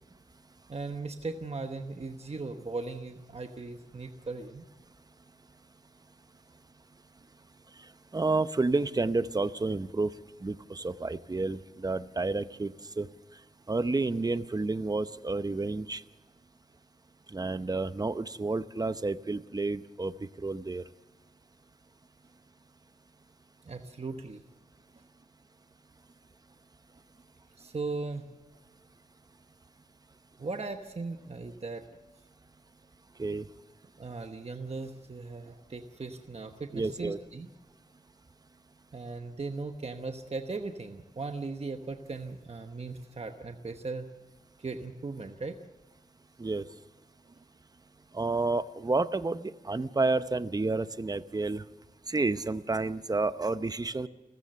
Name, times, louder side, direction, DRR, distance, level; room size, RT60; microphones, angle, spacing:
voice 1, 0.7-4.7 23.7-24.4 24.9-25.0 27.6-28.3 30.4-31.8 34.0-37.5 38.9-44.1 44.6-45.6 47.3-47.4, right 3 dB, 45° right, 6 dB, 1.0 m, -38 dB
voice 2, 8.1-10.1 10.4-13.1 13.7-16.0 17.3-20.8 33.2-33.4 36.7-37.2 46.4-46.6 48.1-51.6 52.1-54.1, right 3 dB, 25° right, 13 dB, 0.7 m, -30 dB
29.5 x 14.5 x 6.7 m, 1.2 s
wide cardioid pair, 95°, 15 cm